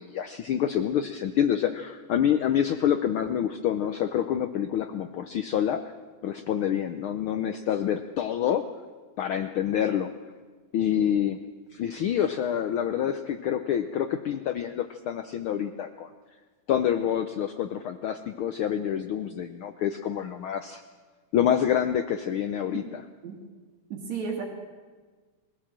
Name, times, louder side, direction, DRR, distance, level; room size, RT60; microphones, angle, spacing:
voice 1, 0.0-5.8 6.2-8.7 9.2-10.1 10.7-11.4 11.7-16.1 16.7-20.8 21.3-23.0, left 9 dB, 85° left, 8 dB, 1.1 m, -27 dB
voice 2, 23.9-24.4, right 6 dB, 70° right, 1 dB, 3.3 m, -33 dB
22.0 x 16.0 x 7.5 m, 1.4 s
omnidirectional pair, 3.4 m